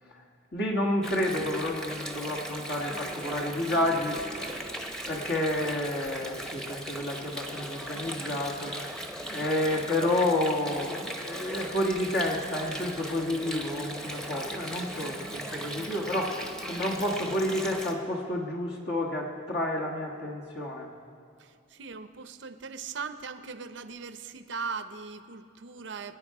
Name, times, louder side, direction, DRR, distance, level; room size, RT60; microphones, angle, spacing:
voice 1, 0.5-4.7 5.1-16.4 16.7-20.9, left 1 dB, 55° left, -2 dB, 1.4 m, -30 dB
Water, 1.0-17.9, right 1 dB, 5° left, 0.9 m, -38 dB
voice 2, 21.4-26.2, right 5 dB, 70° right, 10 dB, 0.7 m, -39 dB
24.5 x 9.3 x 4.8 m, 2.3 s
head